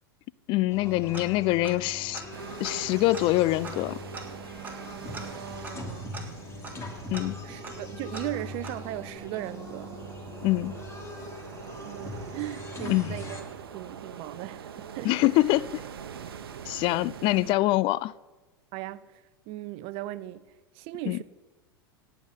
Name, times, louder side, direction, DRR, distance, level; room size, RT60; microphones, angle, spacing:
voice 1, 0.5-2.2 2.6-4.0 7.1-7.4 10.4-10.7 12.9-13.2 15.0-15.8 16.7-18.1 21.1-21.2, left 18 dB, 45° left, 0.4 m, -25 dB
sound 1, 0.7-13.4, left 2 dB, 25° left, 3.0 m, -41 dB
Tick-tock, 1.1-1.9 2.1-2.2 2.6-9.1, right 3 dB, 15° right, 3.0 m, -44 dB
sound 2, 2.3-17.5, right 7 dB, 80° right, 1.0 m, -44 dB
voice 2, 5.2-6.1 7.4-10.0 11.8-13.5 13.7-15.1 18.7-19.1 19.5-20.5 20.8-21.2, right 16 dB, 50° right, 0.7 m, -37 dB
17.5 x 5.8 x 8.3 m
hypercardioid pair, 95°, 12 cm